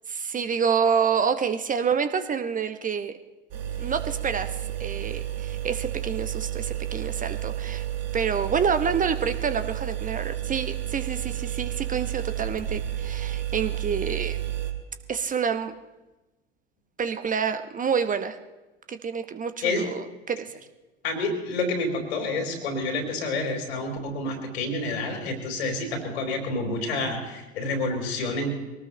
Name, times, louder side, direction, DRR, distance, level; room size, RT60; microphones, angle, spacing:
voice 1, 0.1-3.2 3.8-7.9 8.1-14.4 15.1-15.7 17.0-18.4 18.9-20.6, right 6 dB, 25° right, 10 dB, 1.0 m, -28 dB
sound 1, 3.5-14.7, right 12 dB, 45° right, 2.6 m, -31 dB
voice 2, 21.0-28.5, left 2 dB, 65° left, 3 dB, 4.1 m, -28 dB
24.0 x 18.5 x 3.2 m, 1.1 s
figure-of-eight pair, 70°, 33 cm